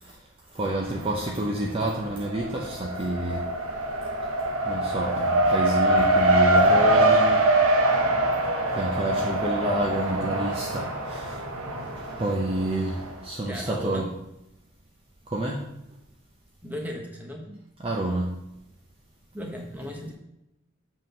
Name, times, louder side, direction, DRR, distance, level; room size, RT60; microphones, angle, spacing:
voice 1, 0.5-3.4 4.6-7.4 7.8-8.0 8.7-11.4 11.8-14.1 15.3-15.6 17.8-18.3, right 1 dB, 25° right, -1 dB, 0.6 m, -29 dB
Race car auto racing, 0.7-1.4 1.7-13.1, right 1 dB, 80° right, 0.9 m, -24 dB
voice 2, 13.5-14.1 16.6-17.6 19.3-20.1, equal, 10° right, 1 dB, 1.1 m, -36 dB
7.7 x 3.9 x 5.5 m, 0.87 s
head